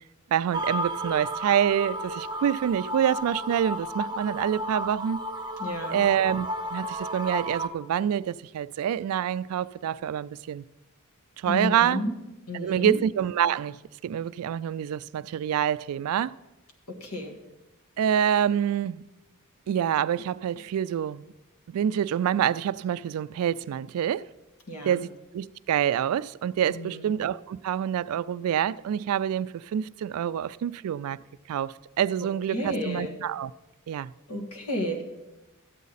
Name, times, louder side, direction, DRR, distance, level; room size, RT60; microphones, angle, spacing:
voice 1, 0.3-5.2 5.9-10.6 11.4-12.0 12.5-13.8 14.0-16.3 18.0-19.0 19.7-21.2 21.7-24.2 24.8-31.2 31.5-33.5 33.9-34.1, right 9 dB, 75° right, 0.3 m, -26 dB
sound 1, 0.5-7.7, equal, 20° right, 0.7 m, -33 dB
voice 2, 5.6-6.0 11.4-12.2 12.5-13.0 16.9-17.3 24.7-25.0 26.7-27.1 32.5-33.2 34.3-35.0, left 1 dB, 85° left, 1.6 m, -32 dB
13.0 x 8.4 x 4.0 m
head